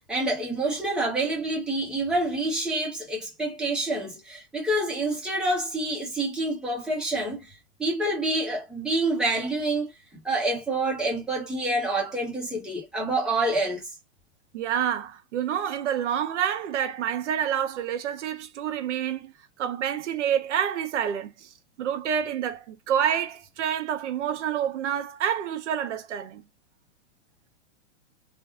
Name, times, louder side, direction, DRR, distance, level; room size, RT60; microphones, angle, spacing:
voice 1, 0.1-7.5 7.8-13.9, right 2 dB, ahead, 1.0 m, -27 dB
voice 2, 14.5-19.3 19.6-21.5 21.8-26.4, right 9 dB, 70° right, 0.8 m, -28 dB
3.4 x 2.4 x 2.4 m
hypercardioid pair, 145°, 37 cm